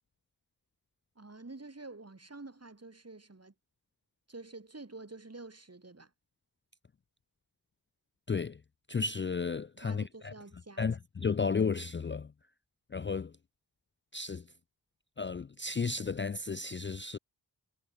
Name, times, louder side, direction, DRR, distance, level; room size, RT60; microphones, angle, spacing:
voice 1, 1.2-3.5 4.3-6.1 9.8-10.9, right 3 dB, 40° right, 2.1 m, -48 dB
voice 2, 8.3-8.6 8.9-10.3 10.8-12.3 12.9-13.3 14.1-14.5 15.2-17.2, left 5 dB, 30° left, 0.4 m, -33 dB
wide cardioid pair, 50°, 39 cm